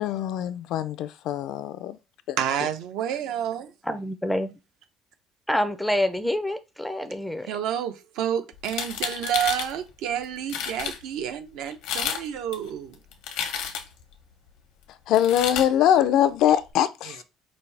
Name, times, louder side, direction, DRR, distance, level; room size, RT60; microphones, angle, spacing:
voice 1, 0.0-2.0 2.3-2.4 15.1-17.2, left 11 dB, 60° left, 0.4 m, -23 dB
voice 2, 2.4-3.7 7.4-13.0 17.0-17.2, right 9 dB, 75° right, 0.8 m, -29 dB
voice 3, 3.9-4.6 5.5-7.5, left 1 dB, ahead, 0.4 m, -27 dB
sound 1, 8.6-9.7 10.2-10.3 10.5-11.0 11.7-12.2 12.5-14.0 15.1-15.7, left 8 dB, 90° left, 0.9 m, -30 dB
5.2 x 2.7 x 3.2 m
cardioid pair, 170°, 0 cm